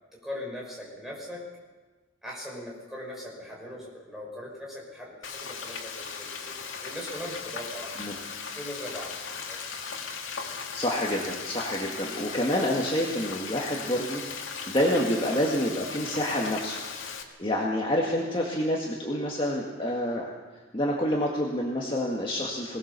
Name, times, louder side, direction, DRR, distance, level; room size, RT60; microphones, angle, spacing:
voice 1, 0.1-1.5 2.2-8.1 8.5-9.7, left 1 dB, ahead, -3 dB, 5.6 m, -40 dB
Frying (food), 5.2-17.2, left 5 dB, 75° left, 2.2 m, -37 dB
voice 2, 10.7-16.8 17.4-20.3 20.7-22.8, equal, 25° left, -2 dB, 1.9 m, -28 dB
22.0 x 18.5 x 6.9 m, 1.3 s
head